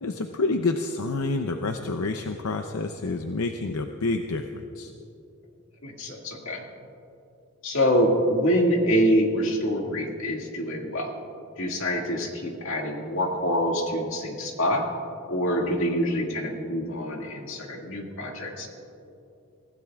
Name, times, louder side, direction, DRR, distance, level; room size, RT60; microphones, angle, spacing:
voice 1, 0.0-4.9, left 3 dB, 85° left, 6 dB, 0.6 m, -28 dB
voice 2, 5.8-6.6 7.6-11.1 11.6-14.8 15.3-18.7, equal, 65° left, 0 dB, 2.0 m, -25 dB
24.5 x 16.0 x 2.4 m, 2.7 s
head